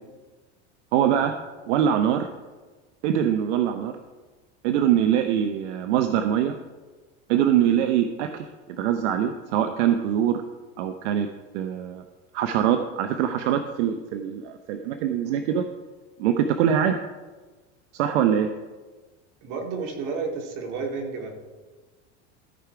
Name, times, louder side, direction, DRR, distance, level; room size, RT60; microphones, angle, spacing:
voice 1, 0.9-1.3 1.7-2.3 3.0-3.9 4.6-6.5 7.3-8.5 8.8-10.4 10.8-11.3 11.5-12.0 12.3-15.7 16.2-17.0 17.9-18.5, right 9 dB, 85° right, 7 dB, 0.8 m, -23 dB
voice 2, 19.4-21.4, right 4 dB, 60° right, 1 dB, 2.4 m, -31 dB
14.5 x 5.0 x 4.6 m, 1.3 s
supercardioid pair, 120°, 34 cm